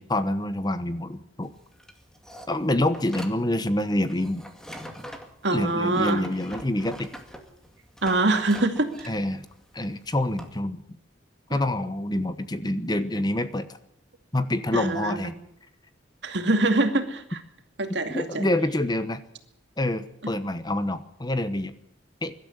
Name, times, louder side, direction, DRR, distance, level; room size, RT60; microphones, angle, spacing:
voice 1, 0.0-1.5 2.5-4.4 5.5-7.1 9.1-9.4 9.7-10.8 11.5-13.7 14.3-15.4 18.1-19.2 19.8-21.7 22.2-22.3, left 1 dB, 20° left, 11 dB, 1.1 m, -27 dB
sound 1, 1.4-10.6, equal, 5° left, 2.2 m, -44 dB
voice 2, 5.4-6.2 8.0-9.1 14.7-15.2 16.2-17.4 17.8-18.5, right 2 dB, 65° right, 6 dB, 2.5 m, -24 dB
22.5 x 12.5 x 9.8 m, 0.75 s
head